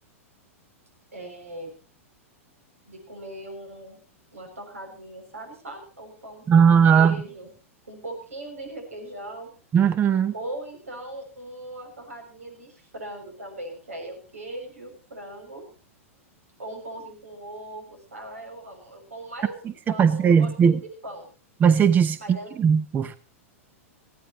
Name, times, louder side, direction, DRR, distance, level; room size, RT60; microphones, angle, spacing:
voice 1, 1.1-1.7 2.9-4.0 4.3-7.5 7.9-9.5 10.3-15.6 16.6-20.8 21.0-21.3 22.2-22.5, right 1 dB, 80° right, 4 dB, 6.9 m, -39 dB
voice 2, 6.5-7.2 9.7-10.3 20.0-20.8 21.6-22.2 22.6-23.1, right 7 dB, 25° right, 14 dB, 0.8 m, -18 dB
20.0 x 15.5 x 3.1 m, 0.35 s
figure-of-eight pair, 100°, 8 cm